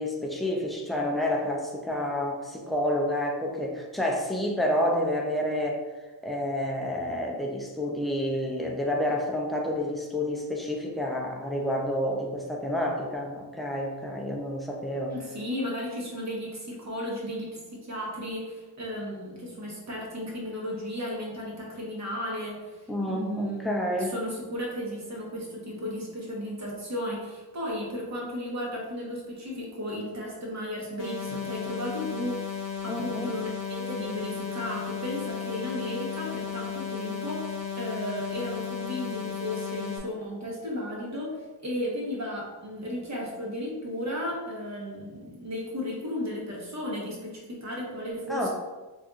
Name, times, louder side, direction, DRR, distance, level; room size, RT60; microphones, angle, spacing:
voice 1, 0.0-5.8 6.2-15.1 22.9-24.1 31.3-31.4 32.9-33.4 48.3-48.5, left 1 dB, ahead, -1 dB, 0.4 m, -29 dB
voice 2, 15.1-48.5, left 1 dB, 40° right, -3 dB, 1.0 m, -34 dB
sound 1, 31.0-40.0, left 7 dB, 50° left, 0.6 m, -34 dB
4.2 x 2.5 x 2.4 m, 1.2 s
wide cardioid pair, 130°, 42 cm